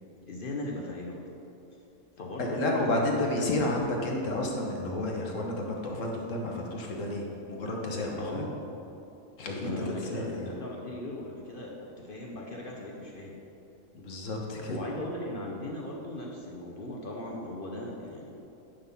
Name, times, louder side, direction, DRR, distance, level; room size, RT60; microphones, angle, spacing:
voice 1, 0.3-1.2 2.2-2.9 3.2-3.5 8.2-8.6 9.6-13.3 14.7-18.3, left 1 dB, 45° left, -2 dB, 0.9 m, -38 dB
voice 2, 2.4-8.5 9.4-10.5 13.9-14.8, left 1 dB, 65° left, 0 dB, 1.4 m, -31 dB
10.0 x 3.7 x 5.7 m, 2.9 s
omnidirectional pair, 1.4 m